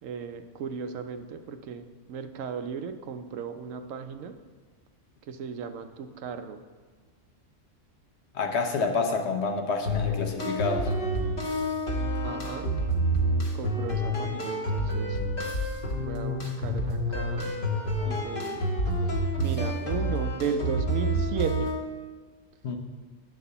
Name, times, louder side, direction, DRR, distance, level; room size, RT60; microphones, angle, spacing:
voice 1, 0.0-4.4 5.2-6.6 12.2-12.7 13.2-15.2 16.0-17.6 18.0-18.7 19.4-21.8, right 6 dB, 85° right, 8 dB, 1.0 m, -36 dB
voice 2, 8.3-10.9 22.6-22.8, left 4 dB, 60° left, 4 dB, 1.0 m, -28 dB
sound 1, 9.9-21.8, equal, 45° left, 1.2 m, -28 dB
8.7 x 4.2 x 6.7 m, 1.4 s
omnidirectional pair, 1.3 m